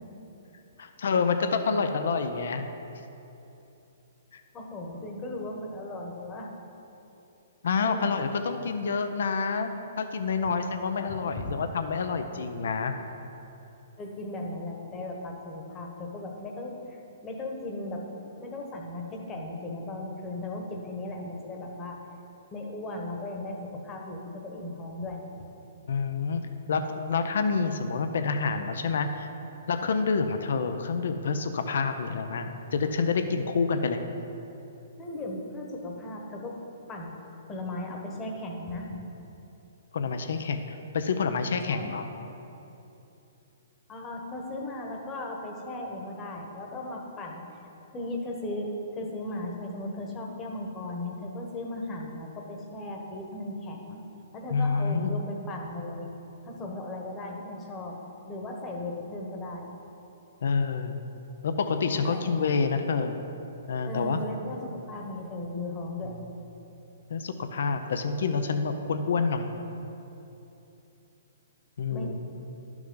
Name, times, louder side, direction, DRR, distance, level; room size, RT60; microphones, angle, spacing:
voice 1, 0.8-2.7 4.3-4.4 7.6-9.7 10.0-12.9 25.9-26.4 26.7-29.3 29.7-34.0 39.9-42.1 54.5-55.2 60.4-60.9 61.4-63.2 63.7-64.2 67.1-69.5 71.8-72.1, left 5 dB, 70° left, 8 dB, 0.6 m, -28 dB
voice 2, 4.5-6.5 7.8-8.1 11.1-11.6 14.0-18.0 18.4-22.0 22.5-25.2 35.0-36.6 36.9-37.2 37.5-38.9 41.7-41.9 43.9-47.4 47.9-54.0 54.3-56.1 56.4-58.0 58.3-59.7 61.9-62.2 63.8-66.1 71.9-72.1, left 2 dB, 20° left, 0 dB, 1.1 m, -37 dB
11.5 x 6.0 x 3.9 m, 3.0 s
hypercardioid pair, 150°, 0 cm